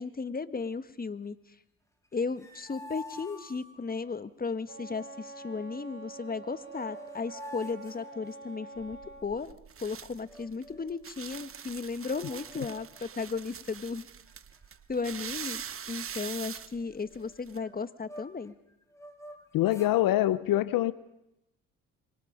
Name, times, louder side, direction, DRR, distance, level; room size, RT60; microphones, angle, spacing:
voice 1, 0.0-1.4 2.1-14.0 14.9-18.5, left 4 dB, 25° left, 13 dB, 1.5 m, -35 dB
sound 1, 2.1-4.1 6.3-6.4 6.6-8.8 10.2-11.0 11.5-11.6 11.9-13.0 13.3-13.7 14.3-14.9 15.2-15.3 15.6-18.5 18.9-20.0, left 1 dB, 10° left, 4.7 m, -48 dB
Wind instrument woodwind instrument, 4.7-9.3, right 3 dB, 55° right, 6.7 m, -46 dB
sound 2, 8.8-17.6, right 7 dB, 40° right, 1.1 m, -43 dB
voice 2, 19.5-20.9, left 14 dB, 70° left, 16 dB, 0.9 m, -24 dB
25.5 x 24.0 x 5.1 m, 0.88 s
supercardioid pair, 60°, 35 cm